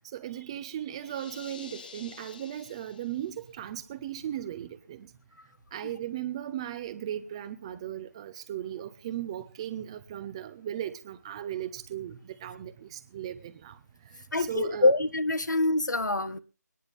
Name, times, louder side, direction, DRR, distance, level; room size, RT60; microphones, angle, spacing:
voice 1, 0.1-5.1 5.7-13.8 14.4-14.9, right 11 dB, 20° right, 0.8 m, -37 dB
sound 1, 1.0-3.5, left 6 dB, 30° left, 0.7 m, -49 dB
voice 2, 14.3-16.4, left 2 dB, 90° left, 1.3 m, -25 dB
24.0 x 10.0 x 3.5 m
figure-of-eight pair, 165°, 10 cm